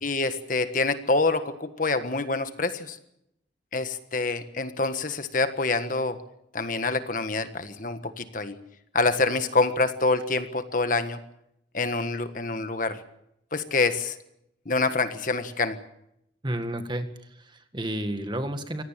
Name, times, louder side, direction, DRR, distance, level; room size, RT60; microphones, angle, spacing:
voice 1, 0.0-3.0 3.7-6.2 6.5-8.6 8.9-11.2 11.7-13.0 13.5-14.1 14.6-15.8, left 3 dB, 45° left, 10 dB, 1.5 m, -26 dB
voice 2, 16.4-17.1 17.4-18.8, right 1 dB, 25° right, 8 dB, 1.8 m, -31 dB
25.0 x 17.5 x 7.5 m, 0.79 s
head